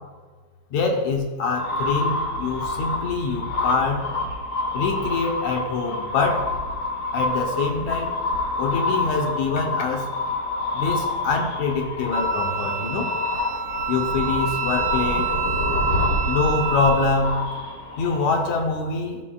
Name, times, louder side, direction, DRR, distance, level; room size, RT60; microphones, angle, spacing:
voice 1, 0.7-4.0 4.7-6.5 7.1-8.1 8.6-10.1 10.7-13.1 13.9-15.3 16.3-17.4 18.0-19.2, left 4 dB, 75° left, 2 dB, 2.2 m, -24 dB
sound 1, 1.5-18.6, left 2 dB, 55° left, 1.8 m, -27 dB
Wind instrument woodwind instrument, 12.1-17.3, right 11 dB, 75° right, 1.4 m, -29 dB
14.0 x 6.0 x 2.4 m, 1.5 s
omnidirectional pair, 3.4 m